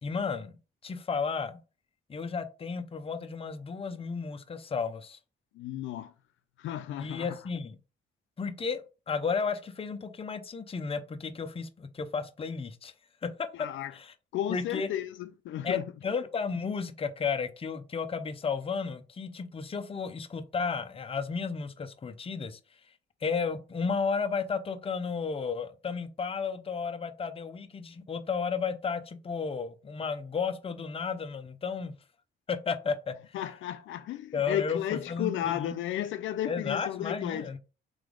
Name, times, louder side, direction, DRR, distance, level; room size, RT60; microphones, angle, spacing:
voice 1, 0.0-0.6 0.8-1.6 2.1-5.2 7.0-7.8 8.4-12.9 13.2-14.1 14.5-14.9 15.6-22.6 23.2-31.9 32.5-33.4 34.3-35.7 36.5-37.6, left 5 dB, 30° left, 0.6 m, -33 dB
voice 2, 5.6-6.1 6.6-7.3 13.6-13.9 14.3-15.8 33.3-37.5, left 11 dB, 75° left, 0.4 m, -33 dB
3.9 x 3.3 x 3.7 m
cardioid pair, 90°, 20 cm